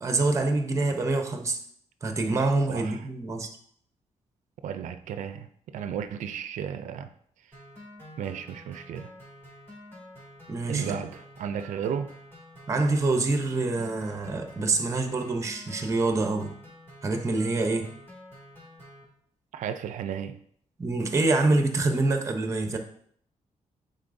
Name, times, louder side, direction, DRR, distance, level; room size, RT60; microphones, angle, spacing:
voice 1, 0.0-1.6 2.0-3.6 10.5-11.0 12.7-16.5 17.0-17.9 20.8-22.8, right 2 dB, 25° right, 0.7 m, -26 dB
voice 2, 2.7-3.0 4.6-7.1 8.2-9.1 10.7-12.1 19.5-20.4, right 8 dB, 80° right, 0.4 m, -34 dB
sound 1, 7.5-19.0, equal, 20° left, 2.8 m, -48 dB
9.6 x 4.0 x 2.6 m
wide cardioid pair, 150°, 13 cm